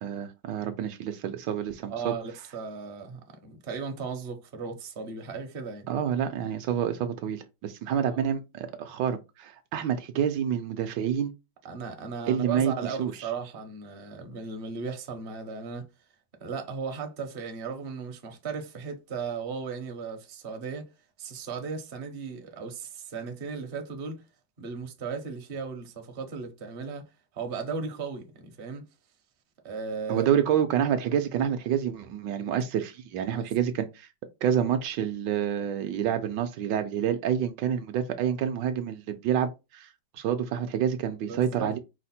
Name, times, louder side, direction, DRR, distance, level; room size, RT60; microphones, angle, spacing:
voice 1, 0.0-2.1 5.9-11.3 12.3-12.7 13.0-13.1 30.1-34.1 34.4-41.8, right 9 dB, 75° right, 1.2 m, -28 dB
voice 2, 1.9-5.9 8.1-8.2 11.6-15.9 16.4-20.9 21.2-24.2 24.6-27.1 27.3-28.9 29.6-30.3 33.2-33.5 41.3-41.8, right 5 dB, 45° right, 0.7 m, -36 dB
4.9 x 2.0 x 4.2 m
omnidirectional pair, 2.1 m